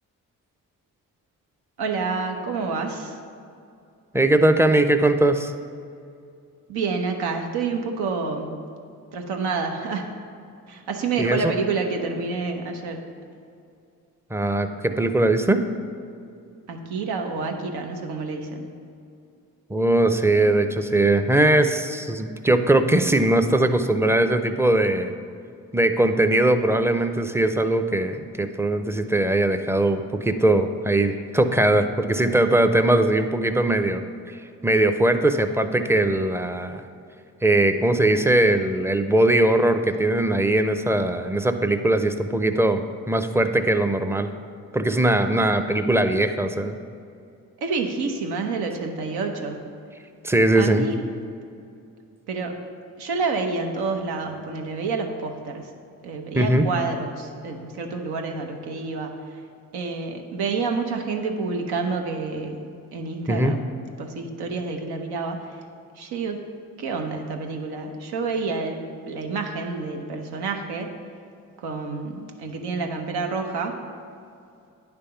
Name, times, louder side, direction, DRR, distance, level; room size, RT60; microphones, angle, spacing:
voice 1, 1.8-3.2 6.7-8.7 9.1-10.1 10.7-13.0 16.7-18.7 47.6-49.7 50.5-51.0 52.3-52.6 53.0-55.7 56.0-59.4 59.7-62.6 62.9-63.6 64.0-65.6 66.0-66.4 66.8-70.9 71.6-73.8, right 4 dB, 80° right, 3 dB, 0.8 m, -28 dB
voice 2, 4.1-5.5 11.2-11.5 14.3-15.6 19.7-25.1 25.7-34.0 34.3-34.4 34.6-36.8 37.4-44.3 44.7-46.8 50.2-50.9 56.4-56.7 63.3-63.6, right 1 dB, 5° right, 8 dB, 0.5 m, -20 dB
9.6 x 3.5 x 5.6 m, 2.5 s
hypercardioid pair, 40°, 39 cm